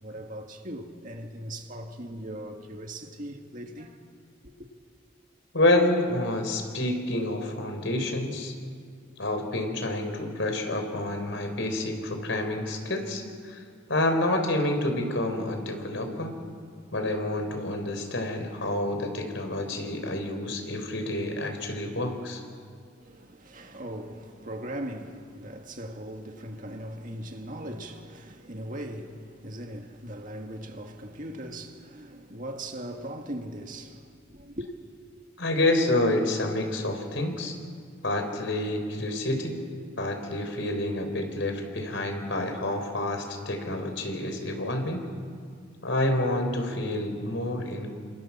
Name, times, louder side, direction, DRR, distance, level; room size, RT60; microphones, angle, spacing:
voice 1, 0.0-4.0 4.4-4.5 23.0-34.7, right 1 dB, 40° right, 2.0 m, -39 dB
voice 2, 5.5-8.5 9.2-13.6 13.9-16.3 16.9-22.4 35.4-37.5 38.0-39.5 40.0-45.0 45.8-47.9, left 1 dB, 65° left, 4.4 m, -28 dB
29.5 x 26.5 x 7.4 m
head